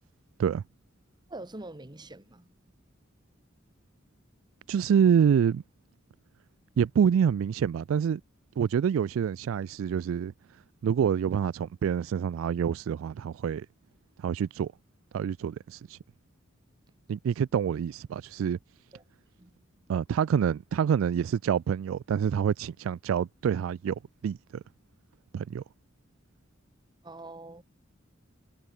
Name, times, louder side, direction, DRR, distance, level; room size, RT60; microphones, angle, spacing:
voice 1, 1.3-2.5 18.9-19.0 19.4-19.5 27.0-27.6, right 2 dB, 20° right, 1.5 m, -44 dB
voice 2, 4.7-5.6 6.8-8.2 8.6-10.3 10.8-13.7 14.2-14.7 15.1-16.0 17.1-18.6 19.9-24.6 25.3-25.6, right 7 dB, 90° right, 0.3 m, -27 dB
head